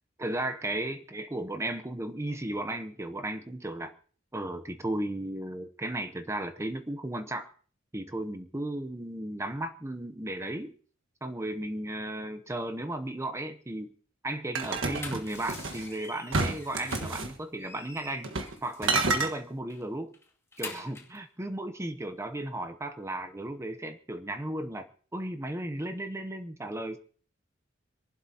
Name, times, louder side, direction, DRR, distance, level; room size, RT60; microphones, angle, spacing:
voice 1, 0.2-3.9 4.3-7.5 7.9-10.7 11.2-13.9 14.2-18.3 18.6-20.1 20.6-27.0, right 1 dB, 15° right, 9 dB, 0.8 m, -35 dB
sound 1, 14.5-15.8 16.3-17.3 18.2-18.6 18.8-19.3, right 3 dB, 75° right, 1.5 m, -29 dB
sound 2, 15.0-17.2 17.6-19.3 19.7-19.8 20.1-21.2, left 3 dB, 15° left, 2.4 m, -46 dB
26.5 x 11.5 x 2.8 m, 0.43 s
head